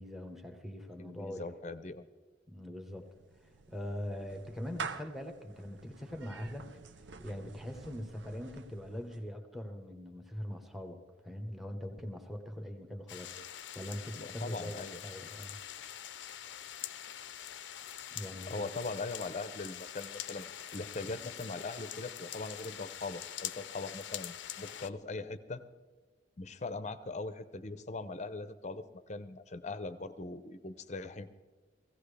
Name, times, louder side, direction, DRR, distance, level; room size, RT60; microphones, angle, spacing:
voice 1, 0.0-1.5 2.5-3.1 3.4-6.7 7.2-13.3 13.7-14.7 15.0-15.6 18.1-18.7, left 1 dB, ahead, 5 dB, 1.1 m, -42 dB
voice 2, 1.0-2.1 14.1-15.0 18.5-25.6 26.4-31.3, left 3 dB, 40° left, 12 dB, 0.7 m, -41 dB
Clapping / Meow, 2.9-9.3, right 5 dB, 75° right, 0.6 m, -48 dB
sound 1, 13.1-24.9, left 10 dB, 80° left, 0.6 m, -44 dB
16.5 x 16.5 x 3.4 m, 1.3 s
head